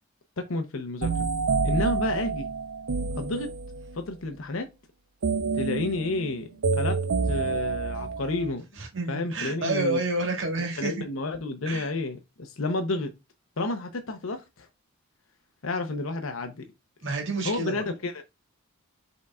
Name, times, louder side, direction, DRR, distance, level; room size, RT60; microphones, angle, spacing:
voice 1, 0.4-1.3 1.6-2.5 3.1-3.5 3.9-4.7 5.5-8.7 9.1-10.0 10.6-13.1 13.6-14.7 15.6-16.7 17.4-18.2, left 2 dB, 70° left, 0.7 m, -31 dB
sound 1, 1.0-4.0 5.2-8.5, right 4 dB, 80° right, 0.6 m, -28 dB
voice 2, 8.8-10.9 11.7-11.9 17.0-17.8, right 2 dB, 55° right, 1.8 m, -29 dB
5.3 x 4.0 x 2.3 m
head